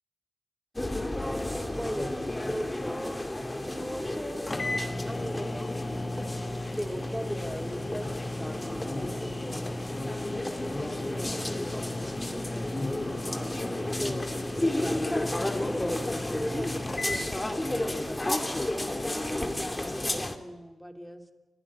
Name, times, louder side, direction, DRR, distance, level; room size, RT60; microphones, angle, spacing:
sound 1, 0.8-20.4, left 1 dB, 20° left, 2.3 m, -32 dB
voice 1, 1.1-2.1 2.4-3.3 3.6-5.7 6.2-13.2 14.0-19.1 19.9-21.2, equal, ahead, 6 dB, 3.0 m, -40 dB
sound 2, 4.1-4.2 4.5-17.3, left 1 dB, 35° left, 2.7 m, -37 dB
sound 3, 9.3-10.7 11.2-14.5, right 2 dB, 85° right, 5.2 m, -56 dB
29.5 x 11.5 x 9.8 m, 1.2 s
cardioid pair, 55°, 0 cm